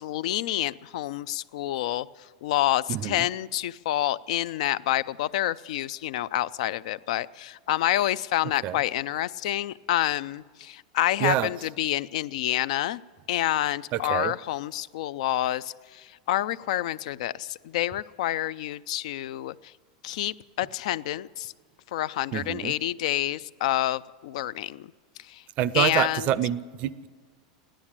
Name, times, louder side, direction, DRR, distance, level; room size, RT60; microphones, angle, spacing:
voice 1, 0.0-13.0 13.3-19.7 20.0-21.5 21.9-24.9 25.2-25.4 25.7-26.3, left 14 dB, 65° left, 18 dB, 0.4 m, -28 dB
voice 2, 2.9-3.3 8.6-8.8 11.2-11.5 13.9-14.3 22.3-22.7 25.6-27.1, right 12 dB, 35° right, 18 dB, 0.5 m, -27 dB
16.0 x 11.5 x 7.4 m, 1.5 s
supercardioid pair, 160°, 4 cm